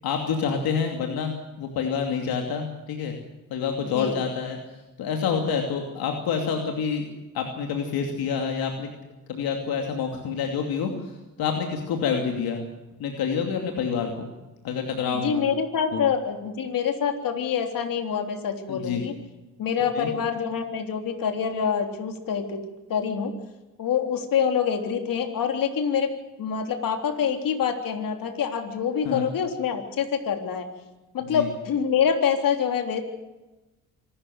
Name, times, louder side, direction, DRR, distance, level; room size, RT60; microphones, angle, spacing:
voice 1, 0.0-3.1 3.5-4.6 5.0-7.1 7.3-8.9 9.3-11.1 11.4-12.6 13.0-14.3 14.6-15.5 15.9-16.0 18.7-19.0 20.0-20.1 29.0-29.3 31.2-31.5, left 6 dB, 80° left, 3 dB, 2.7 m, -27 dB
voice 2, 15.1-19.1 19.6-22.6 22.9-23.3 23.8-26.1 26.4-30.7 31.1-33.0, left 7 dB, 65° left, 5 dB, 3.6 m, -26 dB
26.0 x 13.0 x 7.9 m, 1.1 s
cardioid pair, 80°, 36 cm